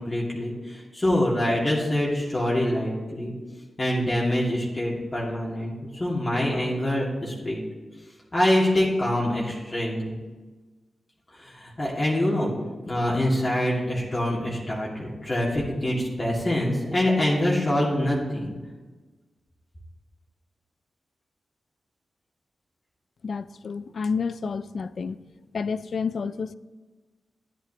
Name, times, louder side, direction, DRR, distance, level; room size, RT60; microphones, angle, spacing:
voice 1, 0.0-3.3 3.8-7.6 8.3-10.1 11.3-12.5 12.9-18.5, left 1 dB, 30° left, 2.4 m, -25 dB
voice 2, 23.2-25.2 25.5-26.6, left 5 dB, 70° left, 0.3 m, -29 dB
11.0 x 10.0 x 3.0 m
cardioid pair, 65°, 0 cm